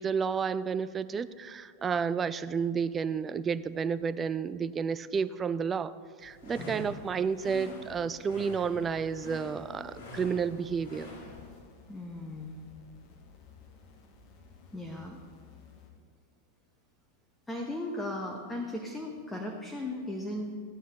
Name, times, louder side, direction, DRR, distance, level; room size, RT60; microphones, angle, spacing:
voice 1, 0.0-5.9 6.2-11.1, right 6 dB, 20° right, 15 dB, 0.3 m, -31 dB
sound 1, 6.2-11.6, left 1 dB, 65° left, 2.4 m, -46 dB
voice 2, 6.5-6.9 11.9-12.6 14.7-15.2 17.5-20.5, left 1 dB, 10° left, 2 dB, 0.9 m, -37 dB
sound 2, 9.6-15.9, left 5 dB, 40° left, 1.3 m, -56 dB
14.5 x 9.1 x 3.0 m, 2.1 s
figure-of-eight pair, 90°, 0 cm